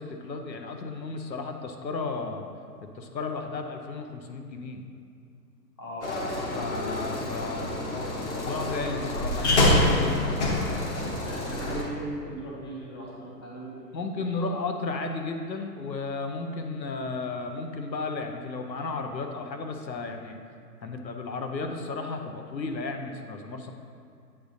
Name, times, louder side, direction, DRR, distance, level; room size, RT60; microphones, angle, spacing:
voice 1, 0.0-2.4 2.8-4.8 6.5-10.2 13.9-20.4 20.8-23.7, left 3 dB, 90° left, 4 dB, 0.9 m, -34 dB
voice 2, 5.8-6.1 11.0-14.5, right 1 dB, 15° left, -4 dB, 0.5 m, -38 dB
sound 1, 6.0-11.8, left 1 dB, 45° left, 1.1 m, -27 dB
8.8 x 5.2 x 2.7 m, 2.4 s
hypercardioid pair, 135°, 50 cm